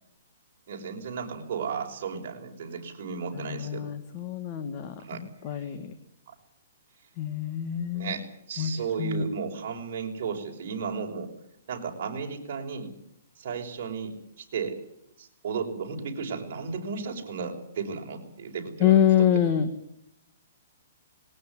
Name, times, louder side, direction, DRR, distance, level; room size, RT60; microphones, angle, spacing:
voice 1, 0.7-3.9 5.0-5.2 5.6-5.7 6.3-6.4 7.9-11.3 11.7-12.9 13.4-14.8 15.2-19.3, right 5 dB, 45° right, 1 dB, 5.7 m, -34 dB
voice 2, 3.3-5.9 7.2-8.1 8.6-8.7 9.0-9.2 18.8-19.7, left 9 dB, 25° left, 9 dB, 1.6 m, -25 dB
20.5 x 18.5 x 9.7 m, 0.75 s
hypercardioid pair, 170°, 0 cm